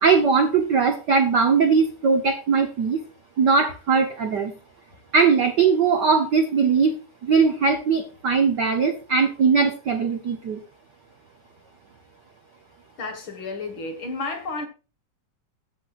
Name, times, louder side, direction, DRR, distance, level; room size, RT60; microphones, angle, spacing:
voice 1, 0.0-3.0 3.4-4.5 5.1-7.0 7.2-10.6, right 5 dB, 70° right, 1.0 m, -20 dB
voice 2, 13.0-14.7, left 3 dB, 50° left, 1.9 m, -31 dB
14.0 x 7.7 x 2.5 m
omnidirectional pair, 3.5 m